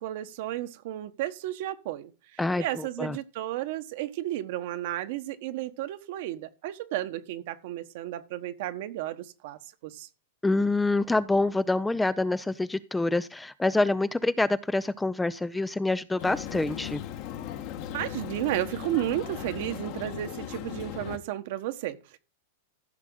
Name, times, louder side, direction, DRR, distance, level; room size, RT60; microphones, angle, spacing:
voice 1, 0.0-10.1 17.9-22.2, right 14 dB, 60° right, 1.3 m, -33 dB
voice 2, 2.4-3.2 10.4-17.0, left 2 dB, 5° left, 0.5 m, -26 dB
sound 1, 16.2-21.2, left 10 dB, 50° left, 1.5 m, -37 dB
15.0 x 6.0 x 3.8 m
supercardioid pair, 135°, 0 cm